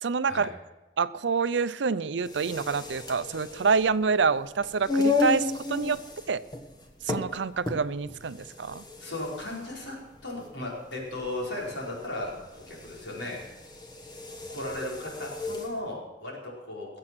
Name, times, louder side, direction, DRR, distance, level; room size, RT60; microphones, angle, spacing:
voice 1, 0.0-0.5 1.0-6.0 6.3-6.4 7.0-8.8, right 5 dB, 80° right, 15 dB, 0.6 m, -27 dB
sound 1, 2.2-15.8, left 3 dB, 20° left, 1.3 m, -34 dB
voice 2, 9.0-13.4 14.3-17.0, left 1 dB, 80° left, -3 dB, 4.8 m, -36 dB
20.5 x 7.7 x 6.1 m, 1.1 s
head